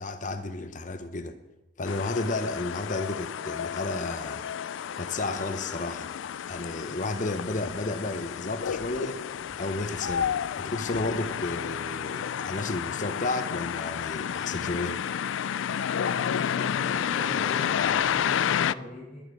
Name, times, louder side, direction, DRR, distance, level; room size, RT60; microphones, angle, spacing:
voice 1, 0.0-1.4 1.8-4.5 5.0-6.1 6.5-9.2 9.6-15.0, left 2 dB, 40° left, 9 dB, 0.8 m, -32 dB
sound 1, 1.9-18.7, left 8 dB, 85° left, 0.4 m, -31 dB
sound 2, 6.3-11.0, right 1 dB, 35° right, 3.5 m, -52 dB
voice 2, 16.0-19.2, equal, 10° left, -10 dB, 6.6 m, -41 dB
21.0 x 8.9 x 4.8 m, 1.0 s
head